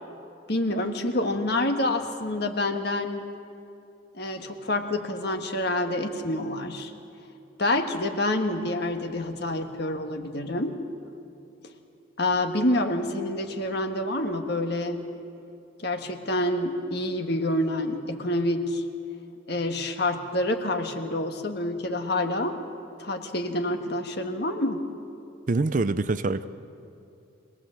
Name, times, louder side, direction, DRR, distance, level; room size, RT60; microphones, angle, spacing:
voice 1, 0.5-3.2 4.1-6.9 7.6-10.8 12.2-15.0 15.8-18.8 19.5-22.6 23.0-24.8, left 1 dB, 55° left, 6 dB, 1.5 m, -27 dB
voice 2, 25.5-26.5, right 3 dB, 40° right, 13 dB, 0.5 m, -25 dB
25.0 x 19.0 x 7.6 m, 2.7 s
head